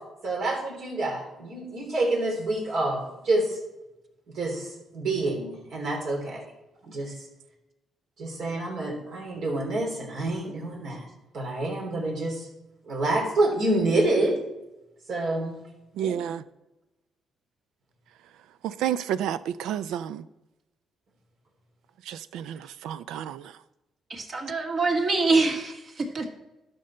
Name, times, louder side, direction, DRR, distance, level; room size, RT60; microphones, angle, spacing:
voice 1, 0.2-3.6 4.3-6.4 6.8-7.1 8.2-11.1 11.3-12.5 12.8-14.4 15.1-15.6 16.0-16.2, right 2 dB, 70° right, 3.2 m, -27 dB
voice 2, 16.0-16.4 18.6-20.2 22.1-23.5, right 10 dB, 90° right, 0.4 m, -30 dB
voice 3, 24.1-26.3, right 3 dB, 50° right, 1.8 m, -25 dB
12.0 x 5.4 x 4.4 m
cardioid pair, 90°, 0 cm